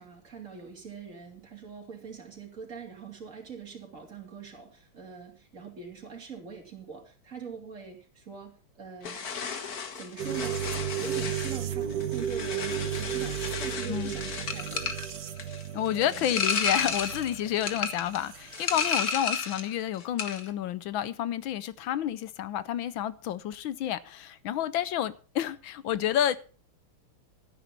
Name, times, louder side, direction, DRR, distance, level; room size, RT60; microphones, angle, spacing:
voice 1, 0.0-9.3 9.9-15.0 16.0-16.4, right 6 dB, 35° right, 3.6 m, -43 dB
sound 1, 9.0-19.7 20.0-20.5, left 5 dB, 45° left, 1.7 m, -33 dB
sound 2, 10.2-18.9, right 9 dB, 55° right, 1.5 m, -34 dB
voice 2, 15.7-26.4, left 11 dB, 70° left, 1.4 m, -30 dB
12.5 x 10.0 x 5.3 m
omnidirectional pair, 2.4 m